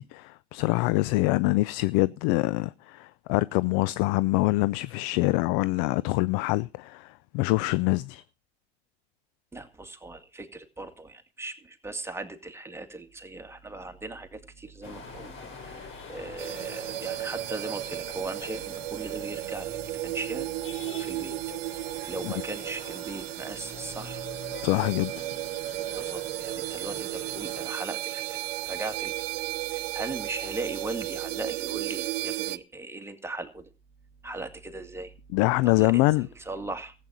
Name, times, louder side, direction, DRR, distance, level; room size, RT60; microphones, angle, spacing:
voice 1, 0.0-8.2 22.2-22.3 24.6-25.1 35.3-36.3, left 20 dB, 60° left, 0.6 m, -25 dB
voice 2, 9.5-15.3 15.6-20.5 21.0-21.4 22.0-24.2 25.9-29.3 29.7-33.7 34.2-35.1 35.6-36.9, right 2 dB, 10° right, 2.1 m, -38 dB
sound 1, 14.8-27.8, left 5 dB, 40° left, 3.7 m, -45 dB
sound 2, 16.4-32.6, right 18 dB, 80° right, 0.8 m, -34 dB
14.5 x 8.5 x 6.1 m
hypercardioid pair, 90°, 30 cm